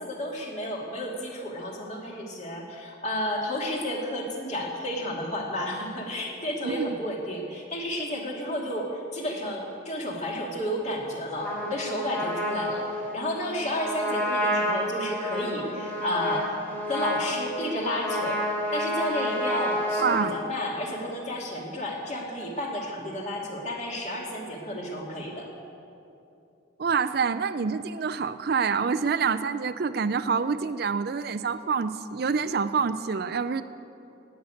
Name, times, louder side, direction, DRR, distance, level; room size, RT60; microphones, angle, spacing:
voice 1, 0.0-12.9 13.1-16.6 16.9-18.5 18.7-25.5, left 1 dB, 35° left, -2 dB, 2.4 m, -31 dB
voice 2, 6.6-7.0 20.0-20.3 26.8-33.6, right 5 dB, 50° right, 13 dB, 0.4 m, -27 dB
Trumpet, 11.4-20.3, equal, 10° left, 2.0 m, -30 dB
18.5 x 6.7 x 9.1 m, 2.7 s
head